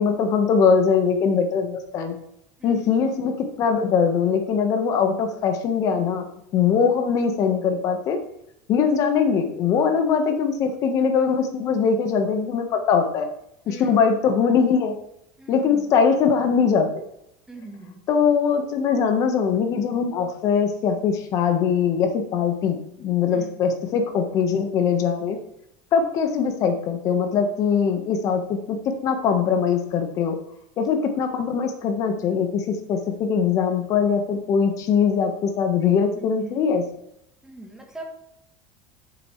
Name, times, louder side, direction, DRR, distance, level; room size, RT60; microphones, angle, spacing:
voice 1, 0.0-2.2 2.6-8.2 8.7-13.3 13.7-15.0 15.5-17.0 18.1-25.4 25.9-30.3 30.8-36.8, left 6 dB, 40° left, 5 dB, 1.3 m, -21 dB
voice 2, 13.6-14.0 15.4-15.9 17.5-18.0 23.3-23.5 36.1-36.6 37.4-38.1, right 2 dB, 5° right, 2 dB, 1.4 m, -40 dB
9.0 x 6.9 x 3.2 m, 0.78 s
cardioid pair, 160°, 9 cm